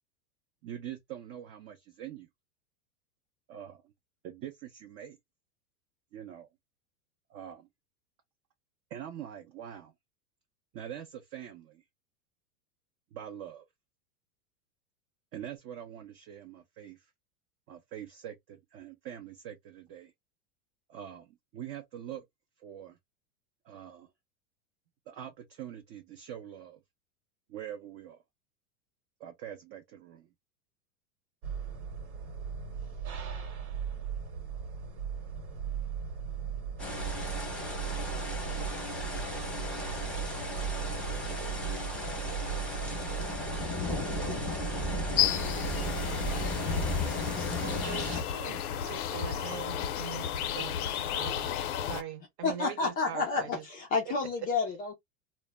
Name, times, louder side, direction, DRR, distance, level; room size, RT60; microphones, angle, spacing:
voice 1, 0.6-2.3 3.5-3.9 4.2-5.2 6.1-6.5 7.3-7.7 8.9-9.9 10.7-11.8 13.1-13.7 15.3-17.1 17.7-20.1 20.9-22.2 22.6-23.0 23.6-24.1 25.1-26.8 27.5-28.2 29.2-30.3, right 10 dB, 35° right, 0.5 m, -44 dB
sound 1, 31.4-47.0, right 7 dB, 75° right, 1.1 m, -37 dB
sound 2, 36.8-48.2, left 2 dB, ahead, 0.8 m, -35 dB
sound 3, 45.2-52.0, left 10 dB, 90° left, 0.6 m, -33 dB
voice 2, 47.6-50.8 51.1-53.6 54.1-54.5, right 9 dB, 50° right, 0.9 m, -42 dB
voice 3, 52.4-54.9, left 4 dB, 20° left, 0.3 m, -30 dB
2.1 x 2.1 x 3.3 m
supercardioid pair, 130°, 43 cm